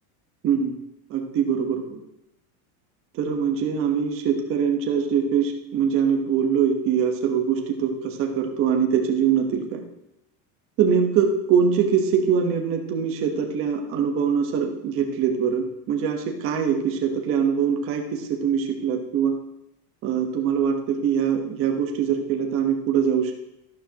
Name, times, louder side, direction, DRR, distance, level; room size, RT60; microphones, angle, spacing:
voice 1, 0.4-0.8 1.1-2.0 3.1-9.8 10.8-19.3 20.0-23.3, right 7 dB, 30° right, 2 dB, 1.1 m, -23 dB
12.0 x 12.0 x 2.9 m, 0.85 s
cardioid pair, 175°, 44 cm